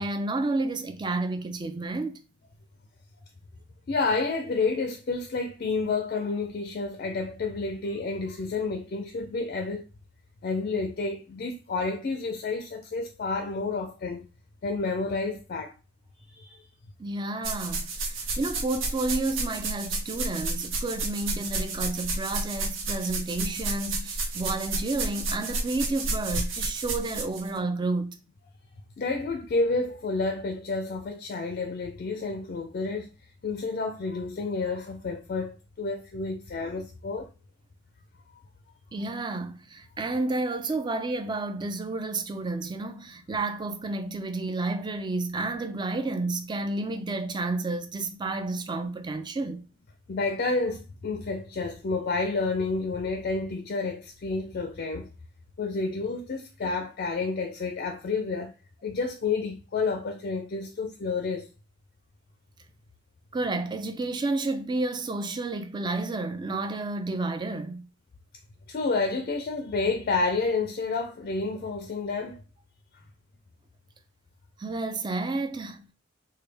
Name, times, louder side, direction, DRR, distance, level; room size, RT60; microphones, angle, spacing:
voice 1, 0.0-2.2 17.0-28.2 38.9-49.6 63.3-67.9 74.6-75.9, right 2 dB, 25° right, 0.4 m, -31 dB
voice 2, 3.9-9.9 10.4-14.2 14.6-15.7 16.3-16.6 29.0-33.1 33.4-37.3 50.1-55.1 55.6-58.5 58.8-61.5 68.7-72.4, left 3 dB, 50° left, 0.4 m, -30 dB
sound 1, 17.4-27.5, right 3 dB, 80° right, 0.7 m, -31 dB
3.2 x 2.2 x 3.3 m
head